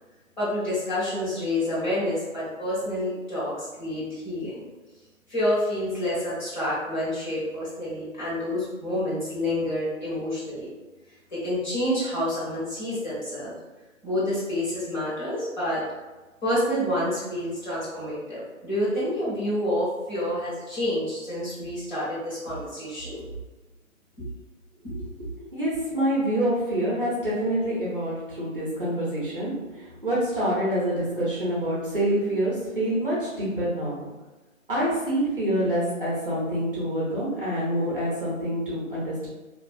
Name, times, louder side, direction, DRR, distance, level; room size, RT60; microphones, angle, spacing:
voice 1, 0.4-4.6 5.3-10.7 11.3-13.5 14.0-15.8 16.4-23.3 24.2-24.3 24.8-25.0, left 1 dB, 35° left, -10 dB, 1.0 m, -28 dB
voice 2, 25.5-34.1 34.7-39.3, right 1 dB, 40° right, -7 dB, 0.6 m, -26 dB
2.4 x 2.4 x 2.2 m, 1.2 s
hypercardioid pair, 165°, 42 cm